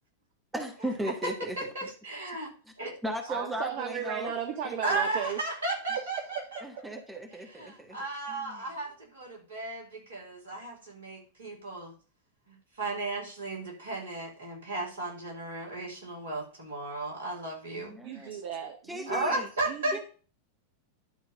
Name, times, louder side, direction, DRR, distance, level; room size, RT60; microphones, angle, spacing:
voice 1, 0.5-1.7 3.0-4.3 4.6-4.7 6.6-8.6 17.8-18.3 18.9-19.5 19.9-20.0, right 1 dB, 10° right, 3 dB, 1.6 m, -37 dB
voice 2, 1.6-2.5 2.8-2.9 4.8-6.6 7.5-11.9 12.5-17.9 19.1-19.9, right 2 dB, 65° right, -1 dB, 4.2 m, -34 dB
voice 3, 3.3-5.4 6.0-7.2 18.0-20.0, right 8 dB, 50° right, 6 dB, 1.0 m, -36 dB
11.0 x 4.0 x 6.7 m, 0.38 s
figure-of-eight pair, 90°, 0 cm